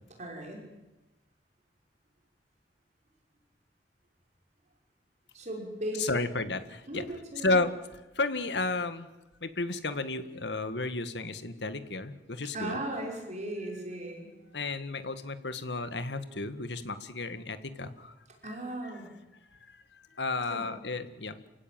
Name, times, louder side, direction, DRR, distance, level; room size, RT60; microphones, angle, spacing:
voice 1, 0.2-0.7 5.3-6.2 6.9-7.6 12.5-14.3 18.4-19.1 20.5-20.7, right 1 dB, 45° right, 1 dB, 5.9 m, -37 dB
voice 2, 6.0-7.0 7.4-7.7 8.2-9.1 9.4-12.8 14.5-18.1 18.4-18.5 20.2-21.5, left 3 dB, 80° left, 11 dB, 1.8 m, -32 dB
29.0 x 16.5 x 9.3 m, 1.1 s
head